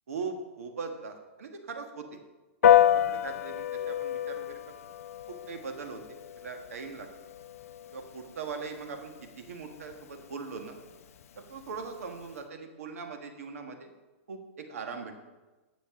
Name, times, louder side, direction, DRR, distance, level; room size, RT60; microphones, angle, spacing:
voice 1, 0.1-2.2 2.7-4.6 5.5-7.1 7.9-10.8 11.4-13.9 14.3-14.4 14.7-15.2, right 5 dB, 85° right, 5 dB, 1.6 m, -40 dB
Piano, 2.6-12.4, left 10 dB, 80° left, 0.5 m, -30 dB
10.5 x 8.0 x 3.7 m, 1.2 s
hypercardioid pair, 160°, 8 cm